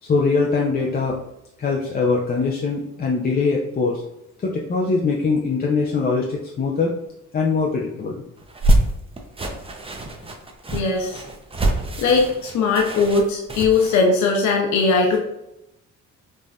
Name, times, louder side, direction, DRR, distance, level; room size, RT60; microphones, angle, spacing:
voice 1, 0.0-1.2 1.6-4.0 4.4-6.9 7.3-8.2, left 4 dB, 30° left, -1 dB, 0.5 m, -22 dB
sound 1, 8.4-14.0, right 1 dB, 20° right, 0.6 m, -24 dB
voice 2, 10.7-11.2 12.0-15.2, left 4 dB, 70° left, 0 dB, 0.7 m, -19 dB
5.3 x 2.5 x 2.3 m, 0.86 s
cardioid pair, 90°, 30 cm